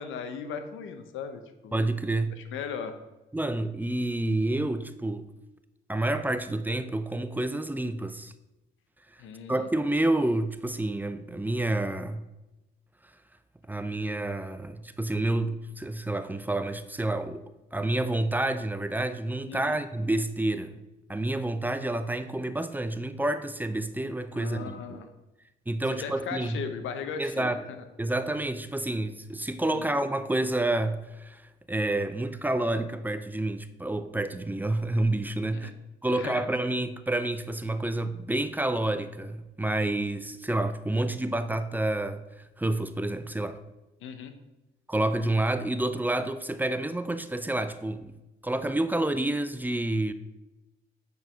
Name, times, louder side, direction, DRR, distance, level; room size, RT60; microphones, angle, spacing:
voice 1, 0.0-1.8 2.4-2.9 9.2-9.7 19.5-19.8 24.3-25.1 25.9-27.8 29.7-30.0 35.5-35.7 36.1-36.4 44.0-44.3, left 6 dB, 80° left, 0.9 m, -37 dB
voice 2, 1.7-2.3 3.3-5.3 5.9-8.3 9.5-12.3 13.7-20.8 21.1-25.0 25.7-26.6 27.2-27.6 28.0-31.4 31.7-35.7 36.0-42.2 42.6-43.6 44.9-48.1 48.4-50.1, right 2 dB, 10° right, 0.5 m, -29 dB
8.1 x 4.7 x 5.1 m
cardioid pair, 90°, 20 cm